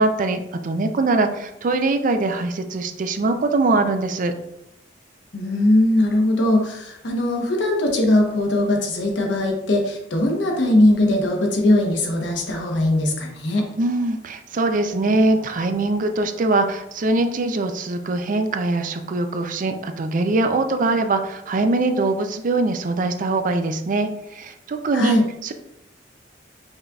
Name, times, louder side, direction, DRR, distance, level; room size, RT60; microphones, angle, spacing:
voice 1, 0.0-4.3 13.8-25.2 25.4-25.5, right 2 dB, 45° right, 7 dB, 0.4 m, -22 dB
voice 2, 5.3-13.7 24.9-25.2, left 1 dB, 85° left, 1 dB, 1.0 m, -20 dB
5.3 x 3.8 x 2.3 m, 0.82 s
head